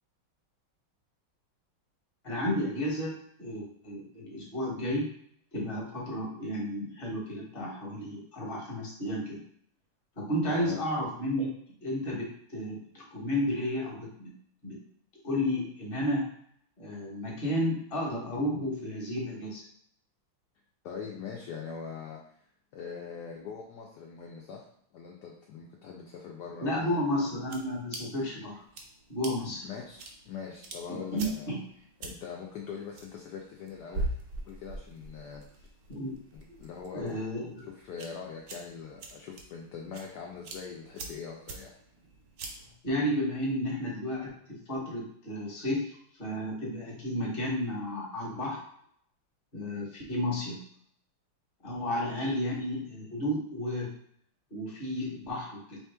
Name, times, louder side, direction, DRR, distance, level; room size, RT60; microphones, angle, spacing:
voice 1, 2.2-3.1 3.4-5.1 5.5-9.4 10.2-11.5 11.8-14.3 14.6-14.8 15.2-16.2 16.8-19.6 26.6-28.6 29.1-29.6 30.9-31.6 35.9-36.2 36.9-37.6 42.8-48.6 49.5-50.6 51.6-53.9 54.5-55.8, left 1 dB, 30° left, -3 dB, 1.3 m, -32 dB
voice 2, 10.5-10.8 20.8-22.2 22.7-24.7 24.9-27.3 29.6-31.5 32.0-34.1 34.5-35.5 36.3-37.3 37.7-41.7 52.2-52.3, left 6 dB, 70° left, -1 dB, 1.0 m, -42 dB
sound 1, 26.7-42.8, right 2 dB, 75° right, 0.7 m, -44 dB
4.8 x 3.0 x 3.4 m, 0.66 s
omnidirectional pair, 2.3 m